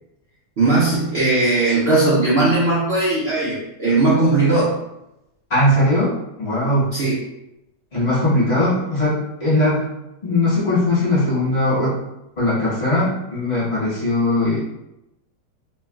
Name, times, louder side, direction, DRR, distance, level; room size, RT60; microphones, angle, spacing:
voice 1, 0.6-4.8 6.9-7.1, right 2 dB, 55° right, -9 dB, 0.7 m, -18 dB
voice 2, 5.5-6.9 7.9-9.8 10.2-12.0 12.4-14.6, left 1 dB, 40° left, -9 dB, 1.3 m, -19 dB
3.1 x 2.2 x 2.3 m, 0.89 s
omnidirectional pair, 1.8 m